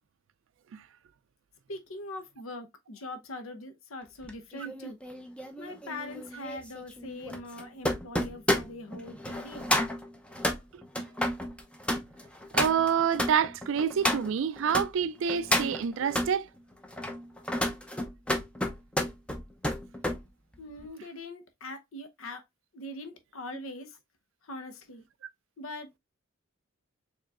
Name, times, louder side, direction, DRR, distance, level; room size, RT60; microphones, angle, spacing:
voice 1, 1.7-5.0 5.6-9.7 20.6-22.4 22.7-24.0 24.4-25.0 25.6-26.0, left 1 dB, 80° left, 0.8 m, -42 dB
sound 1, 4.2-14.9 15.3-16.3 16.8-20.2 20.5-20.9, left 1 dB, 5° left, 0.5 m, -31 dB
voice 2, 12.5-16.5, right 7 dB, 65° right, 0.3 m, -27 dB
4.7 x 3.0 x 2.3 m
head